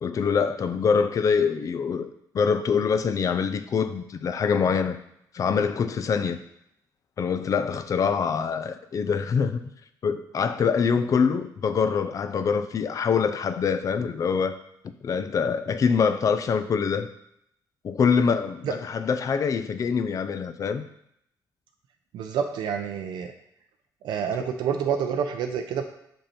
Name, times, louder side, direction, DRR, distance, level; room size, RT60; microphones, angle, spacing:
voice 1, 0.0-5.0 5.3-6.4 7.2-9.6 10.0-14.6 15.0-17.1 17.8-20.8, left 6 dB, 45° left, 10 dB, 0.5 m, -24 dB
voice 2, 22.1-23.3 24.0-25.8, right 7 dB, 90° right, 4 dB, 0.5 m, -28 dB
5.4 x 5.4 x 4.4 m, 0.75 s
cardioid pair, 115°, 8 cm